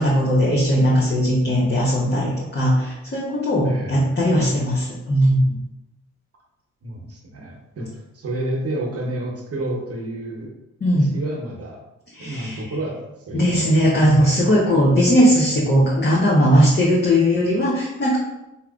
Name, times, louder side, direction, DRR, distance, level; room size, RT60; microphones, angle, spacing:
voice 1, 0.0-5.6 10.8-11.2 12.1-12.6 13.3-18.2, equal, 35° left, -5 dB, 0.9 m, -18 dB
voice 2, 3.6-4.4 6.8-10.5 10.9-11.8 12.2-13.7 14.0-14.7, right 1 dB, 50° right, 0 dB, 1.0 m, -31 dB
3.7 x 2.8 x 2.4 m, 0.92 s
supercardioid pair, 50°, 31 cm